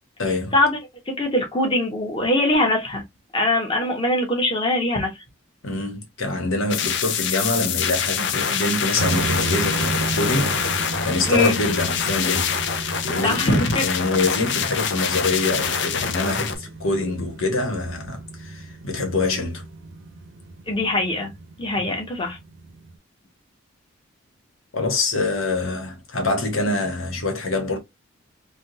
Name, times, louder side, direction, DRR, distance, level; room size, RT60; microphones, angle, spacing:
voice 1, 0.2-0.5 5.6-19.6 24.7-27.8, left 2 dB, 90° left, 1.2 m, -25 dB
voice 2, 1.2-3.0 3.3-5.1 11.3-11.6 13.2-13.9 20.7-21.3 21.6-22.4, left 1 dB, 25° left, 1.1 m, -22 dB
sound 1, 6.7-16.6, left 7 dB, 60° left, 0.5 m, -25 dB
sound 2, 9.0-23.0, right 2 dB, 65° right, 0.6 m, -33 dB
3.4 x 2.3 x 2.7 m
head